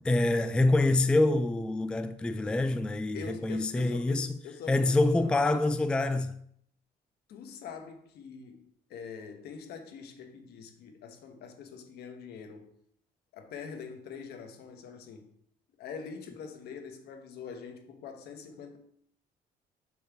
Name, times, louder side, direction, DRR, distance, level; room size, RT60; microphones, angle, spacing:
voice 1, 0.0-4.3 4.7-6.3, left 2 dB, 5° left, 0.3 m, -26 dB
voice 2, 3.1-5.7 7.3-12.7 13.3-15.3 15.8-18.8, left 6 dB, 70° left, 1.2 m, -44 dB
7.1 x 3.2 x 5.9 m
cardioid pair, 110°, 17 cm